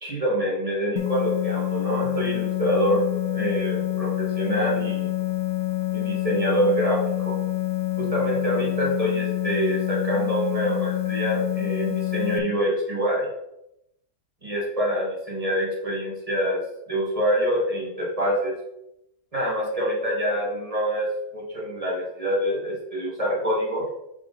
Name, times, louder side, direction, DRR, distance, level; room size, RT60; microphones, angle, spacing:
voice 1, 0.0-3.0 3.3-5.1 5.9-7.4 8.0-13.3 14.4-16.6 16.9-18.5 19.3-23.8, equal, 20° right, -4 dB, 1.6 m, -26 dB
sound 1, 1.0-12.4, left 17 dB, 65° left, 1.0 m, -27 dB
7.0 x 3.6 x 3.8 m, 0.83 s
omnidirectional pair, 1.8 m